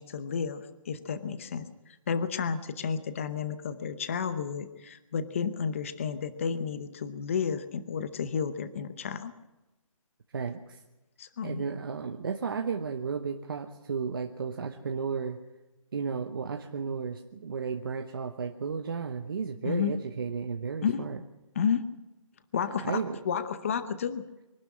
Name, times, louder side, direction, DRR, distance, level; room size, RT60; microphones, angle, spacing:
voice 1, 0.0-9.3 11.2-11.7 19.6-19.9 20.8-21.1 21.5-21.8 22.5-24.2, left 6 dB, 25° left, 13 dB, 0.8 m, -32 dB
voice 2, 10.3-10.8 11.4-15.4 15.9-21.2 22.8-23.2, right 5 dB, 40° right, 5 dB, 1.1 m, -33 dB
24.0 x 12.5 x 9.8 m, 1.0 s
hypercardioid pair, 170°, 17 cm